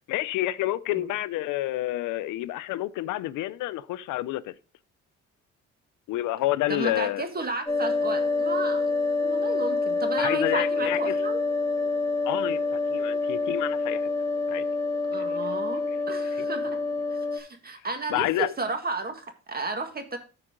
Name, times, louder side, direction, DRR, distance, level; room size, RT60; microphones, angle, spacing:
voice 1, 0.1-4.5 6.1-7.3 10.2-11.2 12.2-14.0 14.5-14.7 15.2-15.4 16.4-16.5 18.1-18.5, left 16 dB, 90° left, 0.5 m, -29 dB
voice 2, 6.7-9.0 9.2-11.4 15.1-16.8 17.1-20.2, right 3 dB, 30° right, 1.9 m, -33 dB
sound 1, 7.7-17.4, left 3 dB, 10° left, 2.6 m, -27 dB
14.0 x 4.8 x 3.7 m
cardioid pair, 90°, 30 cm